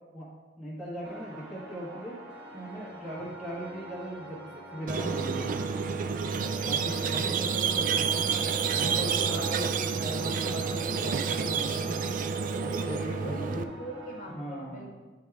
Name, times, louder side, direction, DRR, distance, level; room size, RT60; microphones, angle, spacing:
voice 1, 0.6-2.2 2.5-4.4 4.7-5.7 6.6-12.0 12.6-13.7 14.3-14.9, equal, 5° right, -10 dB, 1.2 m, -38 dB
sound 1, 1.0-14.3, right 1 dB, 90° right, 1.3 m, -45 dB
Squeak, 4.9-13.6, right 6 dB, 50° right, 0.3 m, -29 dB
voice 2, 6.9-7.8 13.2-14.9, equal, 50° left, 0 dB, 1.2 m, -43 dB
10.5 x 3.4 x 3.4 m, 1.3 s
head